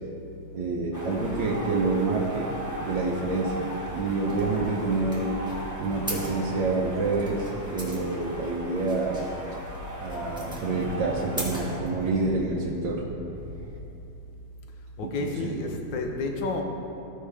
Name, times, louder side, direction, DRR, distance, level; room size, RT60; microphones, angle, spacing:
voice 1, 0.5-2.5 2.8-5.3 5.8-7.5 7.7-9.3 10.0-13.1 15.0-15.6, right 3 dB, 80° right, -4 dB, 1.6 m, -27 dB
sound 1, 0.9-11.8, right 1 dB, 15° left, 0.9 m, -39 dB
sound 2, 1.1-13.8, left 1 dB, 60° right, 0.5 m, -42 dB
sound 3, 4.3-12.4, equal, 5° right, 1.5 m, -39 dB
voice 2, 15.0-16.6, left 3 dB, 75° left, 2 dB, 1.6 m, -30 dB
15.5 x 5.5 x 3.4 m, 2.9 s
omnidirectional pair, 2.0 m